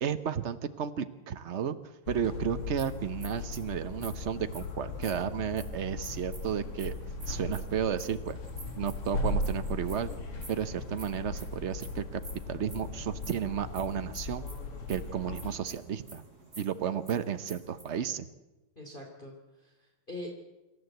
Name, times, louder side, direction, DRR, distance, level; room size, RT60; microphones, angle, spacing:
voice 1, 0.0-1.8 2.1-6.9 7.3-8.4 8.8-10.1 10.5-12.0 12.5-14.4 14.9-16.2 16.6-18.3, right 8 dB, 70° right, 11 dB, 0.6 m, -33 dB
sound 1, 2.1-15.6, left 2 dB, 80° left, 3.0 m, -38 dB
sound 2, 2.6-17.8, right 2 dB, 45° right, 6.8 m, -50 dB
voice 2, 18.8-20.3, left 1 dB, 25° left, 0 dB, 2.7 m, -44 dB
26.5 x 13.5 x 7.9 m, 1.1 s
omnidirectional pair, 2.4 m